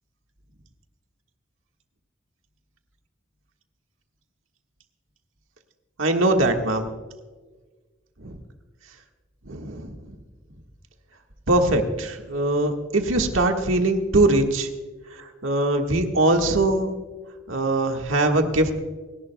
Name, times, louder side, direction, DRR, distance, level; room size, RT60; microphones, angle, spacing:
voice 1, 6.0-6.9 8.2-8.3 9.4-10.1 11.5-14.7 15.1-16.9 17.5-18.8, right 2 dB, 80° right, 4 dB, 1.5 m, -22 dB
29.0 x 11.5 x 2.2 m, 1.4 s
head